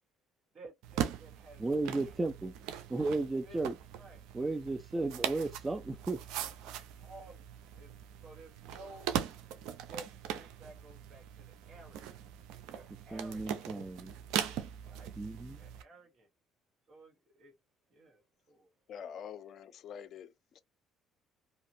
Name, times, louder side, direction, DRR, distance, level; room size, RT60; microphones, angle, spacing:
voice 1, 0.5-1.9 3.4-3.6 4.0-4.3 4.7-4.8 7.0-7.4 7.7-7.9 8.2-9.1 9.8-12.2 12.7-13.7 14.8-15.2 15.5-16.3 16.9-17.5 17.9-18.7, right 2 dB, 55° right, 1.5 m, -54 dB
sound 1, 0.8-15.8, right 9 dB, 80° right, 0.5 m, -40 dB
voice 2, 1.6-2.5 2.9-3.7 4.3-6.2 13.1-14.1 15.2-15.6, right 3 dB, 20° right, 0.4 m, -34 dB
voice 3, 18.9-20.3, left 8 dB, 60° left, 0.4 m, -45 dB
2.8 x 2.5 x 2.7 m
supercardioid pair, 75°, 0 cm